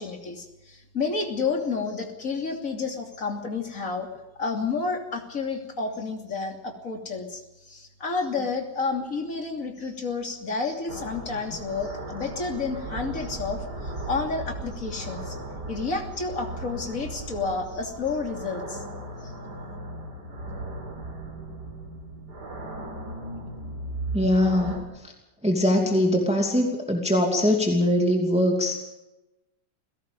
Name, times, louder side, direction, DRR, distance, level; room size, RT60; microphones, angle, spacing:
voice 1, 0.0-4.1 4.4-15.4 15.7-18.8 19.2-19.3, left 4 dB, 50° left, 3 dB, 3.2 m, -30 dB
sound 1, 10.9-24.8, right 2 dB, 75° right, 4.3 m, -37 dB
voice 2, 24.1-24.8 25.4-28.8, left 1 dB, 5° right, 1 dB, 2.6 m, -22 dB
29.0 x 17.5 x 5.4 m, 0.99 s
omnidirectional pair, 1.9 m